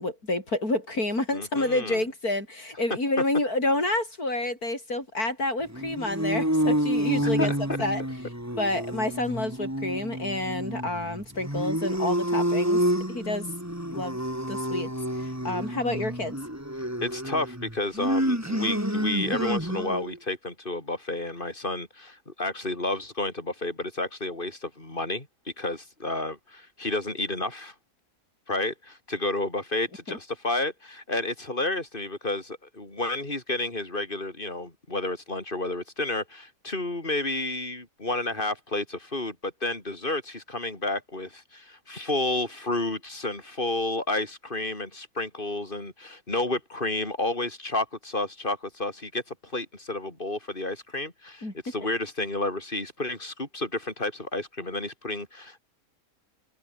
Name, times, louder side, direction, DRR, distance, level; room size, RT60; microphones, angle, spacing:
voice 1, 0.0-7.5 7.8-8.0 8.6-12.8 13.1-13.5 13.9-14.2 14.5-14.9 15.2-16.4 30.1-30.2 51.4-51.5, left 2 dB, 85° left, 8.6 m, -29 dB
voice 2, 1.3-2.0 7.2-7.8 17.0-25.3 25.6-27.7 28.5-55.6, left 2 dB, 35° left, 4.3 m, -31 dB
sound 1, 5.7-20.2, equal, 10° right, 6.0 m, -29 dB
omnidirectional pair, 1.5 m